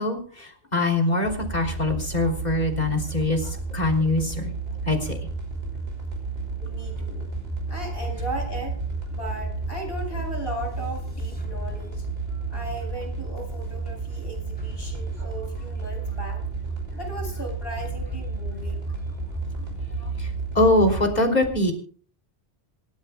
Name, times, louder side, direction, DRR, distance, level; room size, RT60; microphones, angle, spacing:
voice 1, 0.0-4.5 4.9-5.2 6.6-6.7 19.6-19.7 20.0-21.7, left 2 dB, 40° left, 3 dB, 3.5 m, -23 dB
sound 1, 1.2-21.0, right 4 dB, 65° right, 6.2 m, -32 dB
voice 2, 6.6-7.3 7.7-8.8 9.1-12.0 12.5-16.4 16.9-18.9, right 1 dB, 60° left, 2 dB, 6.3 m, -36 dB
sound 2, 6.9-21.2, equal, 10° left, 3.2 m, -37 dB
26.0 x 13.0 x 2.3 m, 0.42 s
omnidirectional pair, 1.1 m